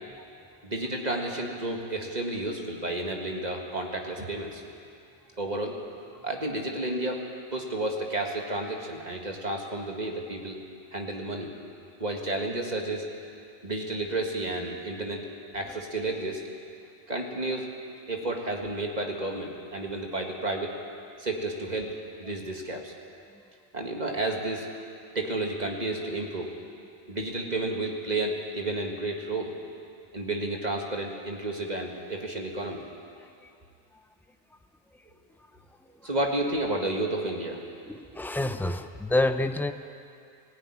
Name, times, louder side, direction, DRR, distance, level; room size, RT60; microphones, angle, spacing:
voice 1, 0.6-4.6 5.4-5.8 6.2-7.2 7.5-10.6 10.9-11.5 12.0-13.1 13.6-15.2 15.5-16.4 17.1-17.7 18.1-20.7 21.2-21.9 22.2-22.9 23.7-24.7 25.2-26.5 27.1-29.5 30.1-32.9 36.0-37.6, right 2 dB, 35° right, 1 dB, 2.0 m, -31 dB
voice 2, 37.9-39.7, left 2 dB, 5° left, 8 dB, 0.3 m, -27 dB
19.0 x 15.5 x 9.8 m, 2.4 s
omnidirectional pair, 1.2 m